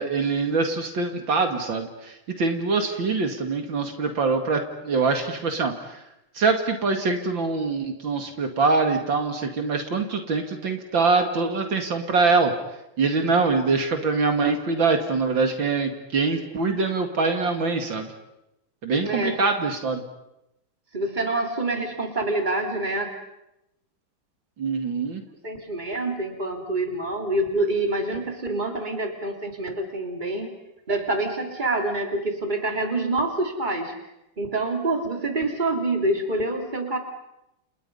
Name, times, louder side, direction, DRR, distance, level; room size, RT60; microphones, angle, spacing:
voice 1, 0.0-6.0 6.3-12.5 13.0-18.1 18.8-20.0 24.6-25.2, right 4 dB, 70° right, 5 dB, 2.9 m, -24 dB
voice 2, 19.0-19.4 20.9-23.1 25.4-30.5 30.9-33.9 34.4-37.0, right 2 dB, 20° right, 3 dB, 3.4 m, -26 dB
30.0 x 29.5 x 5.5 m, 0.88 s
omnidirectional pair, 2.2 m